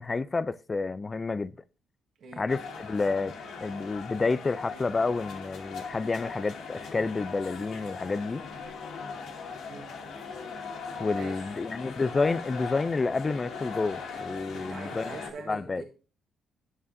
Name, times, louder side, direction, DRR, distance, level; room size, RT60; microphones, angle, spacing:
voice 1, 0.0-1.5 2.4-3.3 3.6-8.4 11.0-15.2 15.5-15.8, left 3 dB, 30° left, 0.3 m, -29 dB
sound 1, 2.5-15.3, left 5 dB, 75° left, 2.1 m, -39 dB
voice 2, 11.1-11.5 14.5-15.8, right 4 dB, 60° right, 1.6 m, -43 dB
10.5 x 6.9 x 2.6 m
cardioid pair, 90°, 0 cm